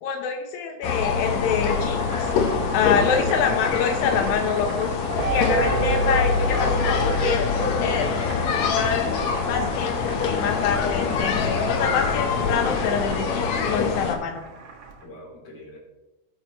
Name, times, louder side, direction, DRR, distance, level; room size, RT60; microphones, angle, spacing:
voice 1, 0.0-2.3 2.7-7.5 7.8-9.1 9.5-14.4, left 6 dB, 85° left, 4 dB, 2.6 m, -26 dB
sound 1, 0.8-14.1, left 5 dB, 65° left, 1.9 m, -25 dB
Boiling, 1.3-15.1, right 4 dB, 55° right, 2.4 m, -39 dB
sound 2, 5.2-8.9, equal, 90° right, 3.2 m, -26 dB
voice 2, 6.6-7.0 11.5-12.0 15.0-15.8, left 2 dB, 35° left, -3 dB, 3.3 m, -40 dB
18.5 x 6.5 x 3.0 m, 1.0 s
omnidirectional pair, 4.1 m